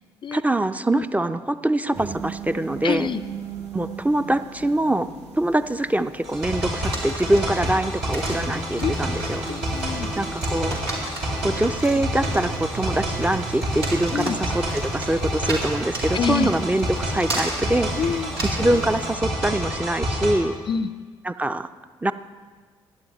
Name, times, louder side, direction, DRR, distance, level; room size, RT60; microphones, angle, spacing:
voice 1, 0.3-3.1 3.7-5.1 5.3-9.5 10.2-10.8 11.4-17.9 18.5-20.6 21.2-21.7 22.0-22.1, right 1 dB, 10° right, 11 dB, 0.5 m, -24 dB
sound 1, 1.9-19.2, right 5 dB, 55° right, 1.3 m, -38 dB
voice 2, 2.8-3.2 8.8-8.9 9.5-10.1 14.1-14.4 16.1-16.5 18.0-18.3 20.7-20.9, left 7 dB, 40° left, 15 dB, 0.4 m, -26 dB
sound 2, 6.2-20.3, equal, 75° right, 3.1 m, -28 dB
sound 3, 6.8-18.9, right 2 dB, 90° right, 1.4 m, -34 dB
15.5 x 10.0 x 3.1 m, 1.5 s
figure-of-eight pair, 40°, 13 cm